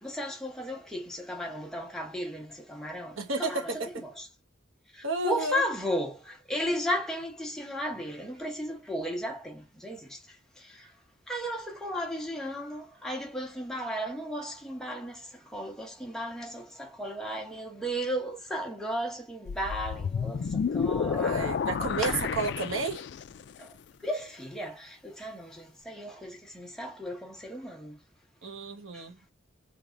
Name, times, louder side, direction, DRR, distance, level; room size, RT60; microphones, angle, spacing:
voice 1, 0.0-3.7 4.0-4.3 4.9-10.9 11.3-21.6 22.0-22.1 23.6-23.7 24.0-28.0 28.9-29.1, equal, 5° left, 1.0 m, -35 dB
voice 2, 3.2-4.0 5.0-5.7 21.1-23.0 28.4-29.2, right 3 dB, 85° right, 1.0 m, -32 dB
sound 1, 19.5-23.4, left 6 dB, 60° left, 0.3 m, -30 dB
4.0 x 3.4 x 2.5 m
head